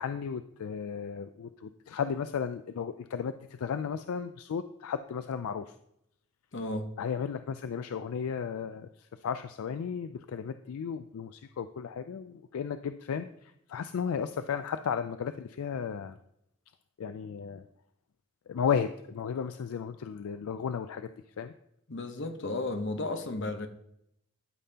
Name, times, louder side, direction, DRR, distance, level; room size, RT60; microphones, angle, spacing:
voice 1, 0.0-5.7 7.0-16.2 17.0-17.6 18.5-21.1 21.4-21.5, left 7 dB, 75° left, 0.3 m, -34 dB
voice 2, 6.5-6.9 21.9-23.7, left 2 dB, 55° left, 0.8 m, -33 dB
12.5 x 5.4 x 2.8 m
head